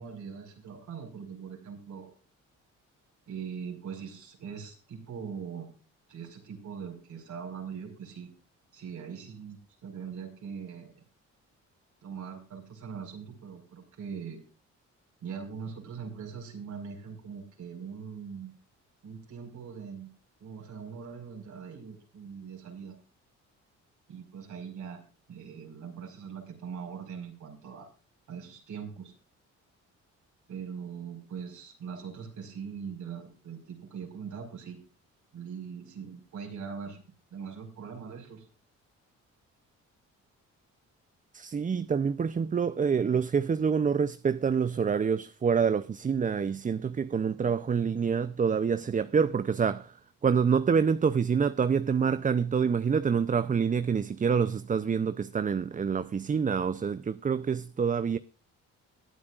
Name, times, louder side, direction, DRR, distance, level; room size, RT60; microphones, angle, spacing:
voice 1, 0.0-2.1 3.3-5.7 6.1-8.3 8.7-11.0 12.0-14.4 15.2-18.6 19.0-20.1 20.4-23.0 24.1-25.0 25.3-27.9 28.3-29.1 30.5-34.8 35.3-37.0 37.3-38.5, right 6 dB, 75° right, 5.0 m, -41 dB
voice 2, 41.3-49.9 50.2-58.2, right 6 dB, 25° right, 0.6 m, -27 dB
22.5 x 8.4 x 2.4 m
cardioid pair, 90°, 30 cm